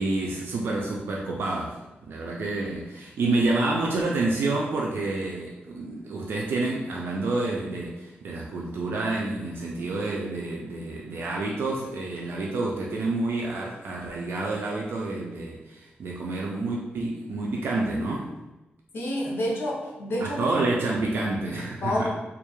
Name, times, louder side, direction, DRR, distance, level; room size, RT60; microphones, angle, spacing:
voice 1, 0.0-18.3 20.2-22.1, right 2 dB, 80° right, -2 dB, 0.3 m, -28 dB
voice 2, 18.9-20.5 21.8-22.1, left 1 dB, 80° left, -3 dB, 0.6 m, -28 dB
2.2 x 2.0 x 2.9 m, 1.0 s
cardioid pair, 85°, 4 cm